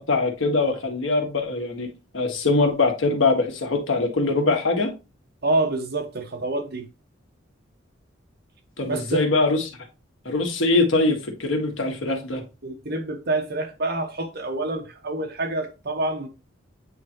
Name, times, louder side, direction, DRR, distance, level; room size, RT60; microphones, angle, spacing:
voice 1, 0.0-1.9 2.1-4.9 8.8-9.6 10.2-12.4, left 3 dB, 80° left, 1.5 m, -22 dB
voice 2, 5.4-6.9 8.9-9.2 12.6-16.3, right 2 dB, 55° right, 1.3 m, -27 dB
8.4 x 3.8 x 3.0 m
head